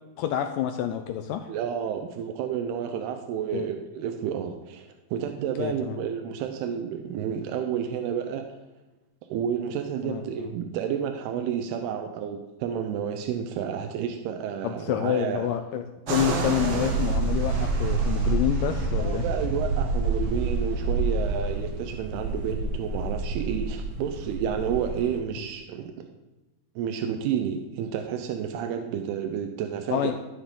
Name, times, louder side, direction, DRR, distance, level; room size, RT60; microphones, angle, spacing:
voice 1, 0.2-1.5 3.5-3.7 5.6-6.0 10.0-10.5 14.6-19.2 29.9-30.1, left 10 dB, 85° left, 6 dB, 2.0 m, -28 dB
voice 2, 1.5-8.5 9.3-15.5 19.0-25.9 26.8-30.1, right 8 dB, 90° right, 5 dB, 2.8 m, -30 dB
sound 1, 16.1-25.2, right 3 dB, 70° right, 3.3 m, -28 dB
12.5 x 11.5 x 3.8 m, 1.0 s
omnidirectional pair, 4.5 m